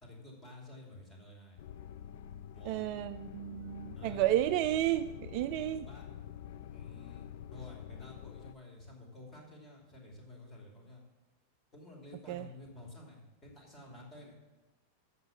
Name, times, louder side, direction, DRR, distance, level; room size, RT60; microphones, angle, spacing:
voice 1, 0.0-1.6 2.5-2.8 4.0-4.3 5.8-6.1 6.7-11.0 11.7-14.4, left 2 dB, 25° left, 0 dB, 2.8 m, -51 dB
sound 1, 1.6-8.5, left 9 dB, 55° left, 0.3 m, -47 dB
voice 2, 2.7-5.9 12.3-12.5, right 13 dB, 45° right, 11 dB, 0.3 m, -32 dB
8.0 x 6.6 x 7.0 m, 1.1 s
figure-of-eight pair, 90°, 0 cm